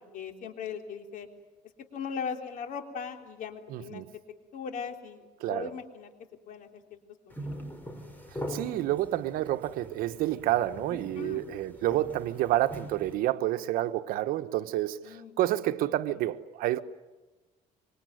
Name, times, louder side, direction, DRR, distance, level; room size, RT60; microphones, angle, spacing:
voice 1, 0.1-1.3 1.9-4.0 4.5-6.1 6.5-7.0 7.3-7.4 10.9-11.4 15.0-15.4, left 6 dB, 65° left, 3.5 m, -39 dB
voice 2, 3.7-4.1 5.4-5.7 8.5-16.8, right 14 dB, 80° right, 1.2 m, -29 dB
sound 1, 7.3-13.1, equal, 10° left, 5.4 m, -42 dB
25.5 x 24.0 x 9.3 m
cardioid pair, 115°, 15 cm